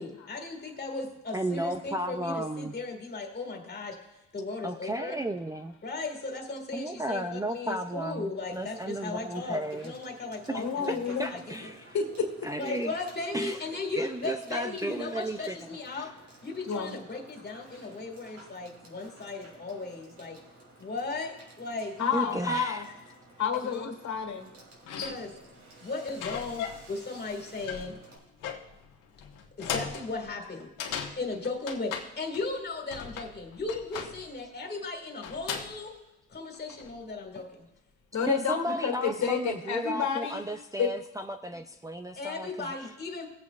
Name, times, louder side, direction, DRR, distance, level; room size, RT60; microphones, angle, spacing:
voice 1, 0.0-4.0 4.3-5.2 5.8-11.7 12.6-16.2 16.4-20.4 20.8-22.0 22.2-22.4 23.7-23.9 25.0-25.3 25.8-28.0 29.6-30.7 31.2-36.0 36.3-37.7 42.2-43.3, left 3 dB, 30° left, 2 dB, 2.1 m, -36 dB
voice 2, 1.3-2.7 4.6-5.7 6.7-9.9 10.5-10.7 11.2-12.0 12.4-12.9 13.3-13.6 14.0-16.1 22.1-22.8 38.3-42.7, right 1 dB, 10° right, 7 dB, 0.4 m, -34 dB
Water / Water tap faucet / Sink (filling or washing), 8.5-28.2, right 2 dB, 55° right, 3.4 m, -54 dB
voice 3, 10.5-11.3 11.9-12.3 16.6-17.0 22.0-22.9 23.4-24.5 38.1-40.4 40.8-40.9, left 6 dB, 65° left, 3 dB, 1.8 m, -29 dB
sound 1, 24.3-24.4 24.8-25.5 26.2-27.0 27.2-32.6 32.9-34.4 35.2-35.8 36.5-37.0, left 7 dB, 85° left, 1.3 m, -38 dB
19.0 x 8.2 x 2.4 m, 1.0 s
cardioid pair, 105°, 31 cm